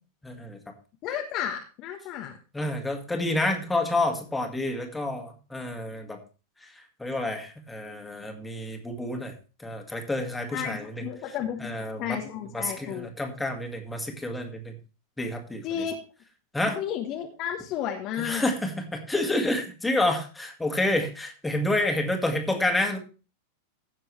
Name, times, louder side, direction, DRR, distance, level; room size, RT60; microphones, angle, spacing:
voice 1, 0.2-0.7 2.5-6.2 6.6-9.3 9.6-11.0 11.6-12.2 12.5-14.8 15.2-15.6 16.5-16.8 18.2-23.0, left 1 dB, 5° left, 3 dB, 2.2 m, -29 dB
voice 2, 1.0-2.4 10.5-13.1 15.6-15.9 16.7-18.5, left 9 dB, 40° left, 3 dB, 1.3 m, -32 dB
15.5 x 6.7 x 3.3 m, 0.33 s
figure-of-eight pair, 90°, 0 cm